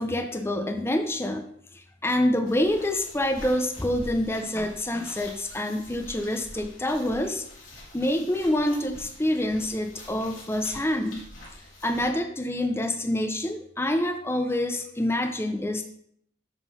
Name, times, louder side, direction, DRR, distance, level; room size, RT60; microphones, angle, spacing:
voice 1, 0.0-1.4 1.7-7.4 7.9-11.2 11.8-15.8, left 1 dB, 15° left, 5 dB, 0.5 m, -27 dB
sound 1, 2.4-12.1, left 1 dB, 85° left, 2.5 m, -45 dB
7.1 x 3.7 x 5.4 m, 0.67 s
head